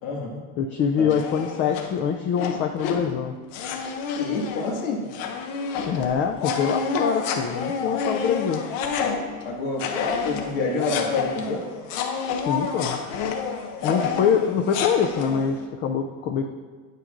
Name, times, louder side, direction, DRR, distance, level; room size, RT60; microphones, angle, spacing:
voice 1, 0.0-0.4 1.0-1.1 4.2-5.0 9.0-9.1 9.4-11.6 13.8-14.2, left 3 dB, 90° left, -1 dB, 2.0 m, -28 dB
voice 2, 0.6-3.4 5.8-8.6 12.4-13.0 13.8-16.5, left 7 dB, 30° left, 3 dB, 0.4 m, -24 dB
sound 1, 1.1-1.9 2.4-3.1 3.5-9.5 9.8-15.5, left 5 dB, 70° left, 1.0 m, -29 dB
9.0 x 8.2 x 2.5 m, 1.5 s
supercardioid pair, 135°, 40 cm